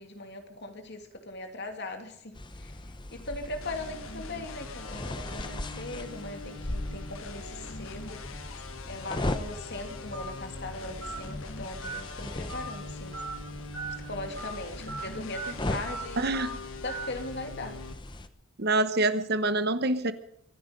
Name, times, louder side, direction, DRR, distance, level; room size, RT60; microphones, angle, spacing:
voice 1, 0.0-8.2 8.9-13.2 14.0-16.3 16.8-17.8, left 2 dB, 50° left, 5 dB, 2.7 m, -39 dB
sound 1, 2.3-18.3, left 1 dB, 20° left, 0.9 m, -39 dB
sound 2, 3.6-17.9, left 3 dB, 70° left, 1.5 m, -43 dB
Telephone, 10.1-10.3 11.0-11.2 11.8-12.0 12.5-12.7 13.1-13.3 13.7-14.0 14.4-14.5 14.9-15.0 15.3-15.5 15.9-16.0 16.3-16.5 16.9-17.1, right 4 dB, 65° right, 5.1 m, -37 dB
voice 2, 16.2-16.6 18.6-20.1, right 2 dB, 45° right, 12 dB, 1.0 m, -26 dB
24.5 x 10.5 x 5.3 m, 0.71 s
head